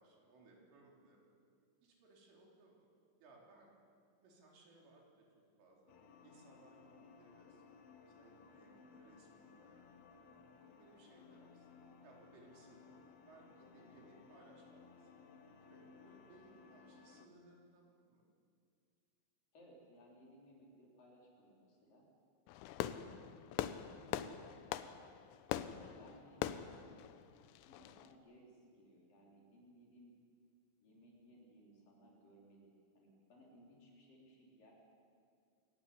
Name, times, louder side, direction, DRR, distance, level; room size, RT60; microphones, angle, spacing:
voice 1, 0.0-1.4 1.8-2.9 3.2-3.7 4.2-5.3 5.6-5.9 6.2-6.8 7.2-9.9 10.6-11.7 12.0-13.0 13.3-15.1 15.6-18.3 23.1-23.4, right 3 dB, 85° right, -2 dB, 6.5 m, -64 dB
sound 1, 5.9-17.3, left 5 dB, 65° left, 2.7 m, -60 dB
voice 2, 8.2-8.5 19.5-22.1 22.8-23.4 23.8-24.4 25.7-26.9 27.6-30.1 30.8-34.7, equal, 45° left, -2 dB, 5.6 m, -63 dB
Fireworks, 22.5-28.1, left 11 dB, 85° left, 3.3 m, -43 dB
27.0 x 15.0 x 9.8 m, 2.3 s
omnidirectional pair, 5.5 m